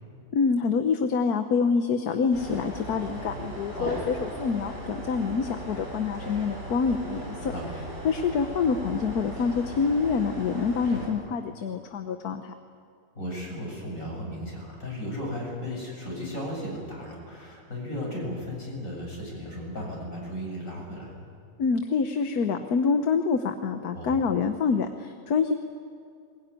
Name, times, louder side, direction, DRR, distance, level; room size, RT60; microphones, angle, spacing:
voice 1, 0.3-7.4 8.0-12.5 21.6-25.5, left 5 dB, 75° left, 7 dB, 1.6 m, -26 dB
sound 1, 2.3-11.1, right 1 dB, 30° right, 5.7 m, -38 dB
voice 2, 3.7-4.1 7.5-7.9 10.8-11.0 13.1-21.2 23.9-24.2, equal, 60° left, -2 dB, 7.8 m, -35 dB
22.0 x 21.5 x 9.9 m, 2.4 s
omnidirectional pair, 1.6 m